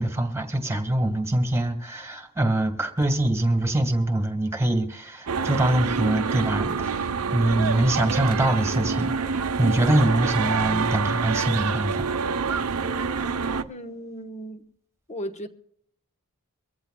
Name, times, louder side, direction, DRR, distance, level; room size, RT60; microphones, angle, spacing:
voice 1, 0.0-12.1, right 1 dB, 10° right, 1.7 m, -24 dB
sound 1, 5.3-13.6, right 5 dB, 85° right, 0.8 m, -27 dB
voice 2, 13.7-14.7 15.1-15.5, equal, 30° left, 1.2 m, -36 dB
24.0 x 15.0 x 2.3 m
head